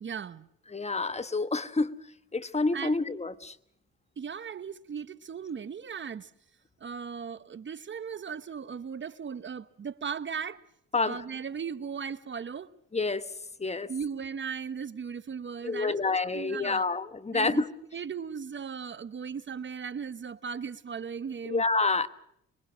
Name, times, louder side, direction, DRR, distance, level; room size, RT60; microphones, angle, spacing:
voice 1, 0.0-0.5 2.7-2.9 4.2-6.3 6.8-10.6 11.0-12.7 13.9-16.9 17.3-17.6 17.9-21.6, right 6 dB, 40° right, 1.0 m, -37 dB
voice 2, 0.7-1.9 2.3-3.5 10.9-11.2 12.9-13.3 13.6-13.9 15.6-17.7 21.4-22.1, left 3 dB, 20° left, 1.2 m, -28 dB
26.0 x 22.5 x 6.2 m
cardioid pair, 90°, 30 cm